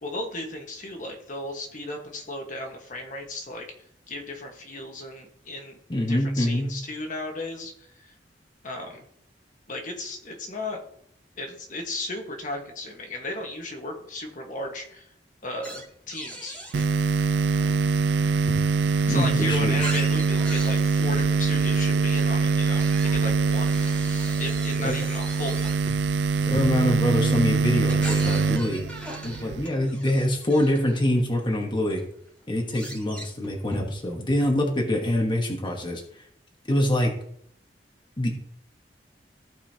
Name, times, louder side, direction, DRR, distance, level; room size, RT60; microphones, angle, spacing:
voice 1, 0.0-3.7 4.1-5.8 6.1-7.7 8.0-8.1 8.6-9.0 9.7-10.8 11.4-15.1 15.4-16.6 18.9-23.8 24.4-25.7, left 2 dB, 50° left, 2 dB, 1.4 m, -35 dB
voice 2, 5.9-6.7 19.1-19.8 24.8-24.9 26.5-28.8 29.2-32.0 32.5-36.2 36.7-37.1 38.2-38.4, left 1 dB, 30° left, 0 dB, 1.3 m, -25 dB
sound 1, 15.6-16.9 17.4-19.0 19.5-22.0 22.6-31.0 31.6-31.7 31.9-34.2, equal, 5° left, 2.1 m, -39 dB
sound 2, 16.7-29.7, right 4 dB, 70° right, 0.3 m, -23 dB
15.0 x 5.5 x 2.8 m, 0.69 s
head